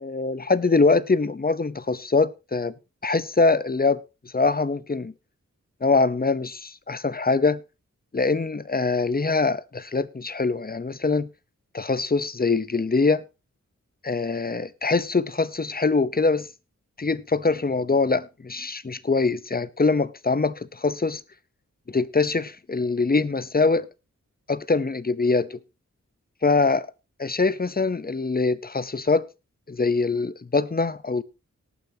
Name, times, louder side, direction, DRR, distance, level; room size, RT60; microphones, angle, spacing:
voice 1, 0.0-2.7 3.0-4.0 4.2-5.1 5.8-7.6 8.1-11.3 11.7-13.2 14.0-16.5 17.0-21.2 21.9-23.9 24.5-25.6 26.4-26.9 27.2-29.3 29.7-31.2, left 3 dB, 30° left, 0.7 m, -23 dB
18.5 x 9.4 x 2.8 m
wide cardioid pair, 85°, 29 cm